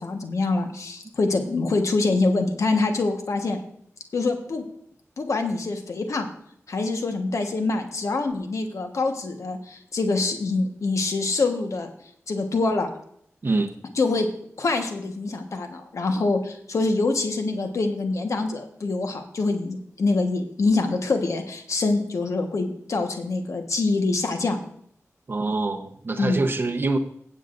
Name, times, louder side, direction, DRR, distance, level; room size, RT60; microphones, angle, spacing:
voice 1, 0.0-3.6 4.1-4.6 5.2-6.3 6.7-11.9 12.3-12.9 14.0-14.3 14.6-24.6 26.2-26.4, left 3 dB, 80° left, 5 dB, 1.3 m, -25 dB
voice 2, 25.3-27.0, right 3 dB, 45° right, 3 dB, 0.9 m, -25 dB
16.5 x 7.9 x 2.5 m, 0.68 s
wide cardioid pair, 95°, 5 cm